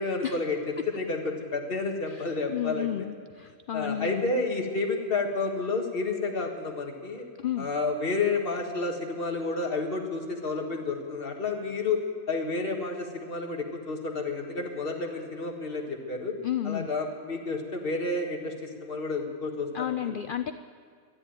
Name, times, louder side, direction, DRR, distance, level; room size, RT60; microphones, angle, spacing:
voice 1, 0.0-2.9 3.7-7.2 7.6-16.3 16.6-20.2, left 3 dB, 45° left, 3 dB, 1.7 m, -30 dB
voice 2, 2.1-4.3 7.4-7.7 16.4-16.9 19.7-20.5, left 10 dB, 75° left, 11 dB, 0.4 m, -32 dB
13.0 x 11.0 x 9.0 m, 2.1 s
omnidirectional pair, 1.4 m